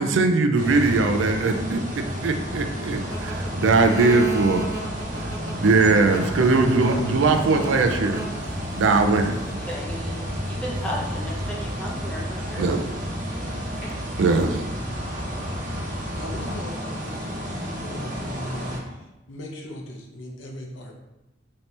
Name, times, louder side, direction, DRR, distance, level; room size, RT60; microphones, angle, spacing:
voice 1, 0.0-4.7 5.2-5.3 5.6-8.3 8.7-9.6 12.6-12.8 14.2-14.6, right 3 dB, 75° right, 6 dB, 0.4 m, -20 dB
sound 1, 0.5-18.8, equal, 40° right, 0.8 m, -32 dB
sound 2, 3.0-8.9 9.7-10.3 13.8-13.9, right 3 dB, 45° left, 1.4 m, -34 dB
sound 3, 6.9-16.6, equal, 25° left, 1.2 m, -37 dB
voice 2, 9.7-10.2 10.5-12.8, equal, 5° left, -3 dB, 0.7 m, -34 dB
voice 3, 16.1-20.9, equal, 70° left, 0 dB, 0.7 m, -38 dB
4.2 x 2.8 x 3.2 m, 0.98 s
head